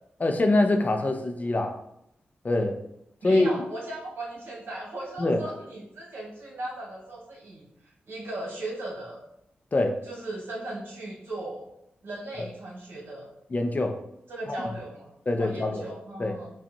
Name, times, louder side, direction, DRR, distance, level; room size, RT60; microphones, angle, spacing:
voice 1, 0.2-1.8 2.4-2.8 3.2-3.5 5.2-5.4 9.7-10.0 12.4-12.5 13.5-14.0 14.5-14.6 15.3-15.9 16.2-16.4, left 2 dB, 45° left, 5 dB, 0.6 m, -24 dB
voice 2, 3.2-7.7 8.1-9.2 10.1-11.7 12.0-13.3 14.3-15.1 15.4-16.5, right 2 dB, 75° right, -4 dB, 1.3 m, -37 dB
5.2 x 2.4 x 2.7 m, 0.77 s
supercardioid pair, 40°, 4 cm